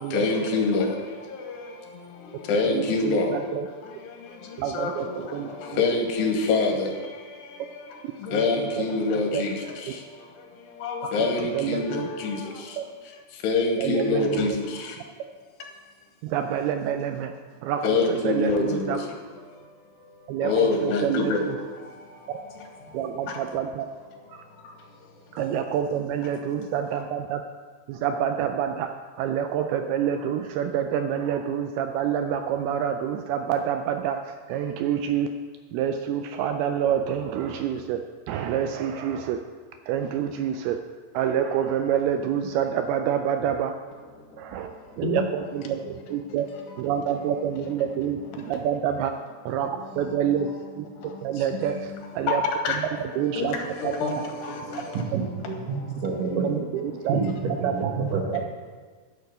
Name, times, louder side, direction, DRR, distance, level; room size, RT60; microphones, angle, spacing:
voice 1, 0.1-0.9 2.5-3.3 4.7-4.9 5.8-6.9 8.3-9.5 10.8-12.3 13.4-14.5 17.8-19.0 20.4-21.4 45.0-45.2 52.6-52.8 53.4-53.5 54.0-54.1 54.4-54.5, left 3 dB, 80° left, 2 dB, 3.3 m, -24 dB
voice 2, 2.7-3.6 4.6-5.0 5.3-5.5 9.3-9.4 11.2-11.3 11.6-12.1 13.8-14.5 16.3-17.3 17.6-17.8 18.3-19.0 20.3-21.3 22.9-23.9 25.4-27.4 27.9-28.9 29.2-34.2 34.5-35.3 35.7-38.0 38.3-39.4 39.9-40.8 41.2-43.7 44.4-44.7 45.0-46.5 46.8-48.2 48.5-49.1 49.5-49.7 50.0-50.5 50.8-50.9 51.2-51.9 52.2-52.4 53.2-53.5 56.2-57.2 57.6-57.9, right 9 dB, 85° right, 6 dB, 2.3 m, -27 dB
voice 3, 54.9-56.6 57.1-58.4, right 4 dB, 65° right, 0 dB, 2.4 m, -28 dB
10.0 x 6.6 x 6.6 m, 1.5 s
omnidirectional pair, 4.8 m